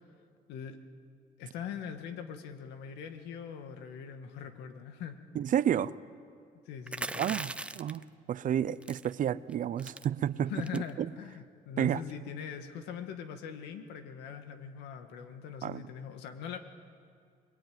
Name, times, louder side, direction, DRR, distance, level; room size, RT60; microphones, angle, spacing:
voice 1, 1.4-5.2 6.7-7.4 10.5-16.6, left 7 dB, 90° left, 7 dB, 2.0 m, -42 dB
voice 2, 5.3-5.9 7.2-10.8 11.8-12.0 15.6-15.8, right 10 dB, 50° right, 16 dB, 0.7 m, -31 dB
sound 1, 6.9-8.0 8.8-9.1 9.5-9.6 9.8-10.1 10.6-10.9, right 2 dB, 5° right, 0.7 m, -38 dB
27.5 x 22.0 x 9.5 m, 2.3 s
cardioid pair, 110°, 17 cm